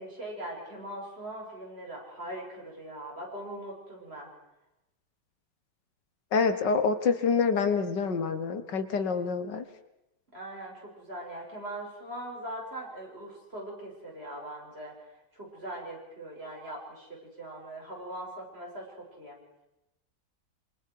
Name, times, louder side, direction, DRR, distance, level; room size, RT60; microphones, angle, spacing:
voice 1, 0.0-4.3 10.3-14.9 15.3-19.4, right 1 dB, 35° right, -2 dB, 6.9 m, -41 dB
voice 2, 6.3-9.7, left 5 dB, 80° left, 10 dB, 2.1 m, -27 dB
27.0 x 25.5 x 4.8 m, 0.92 s
omnidirectional pair, 1.9 m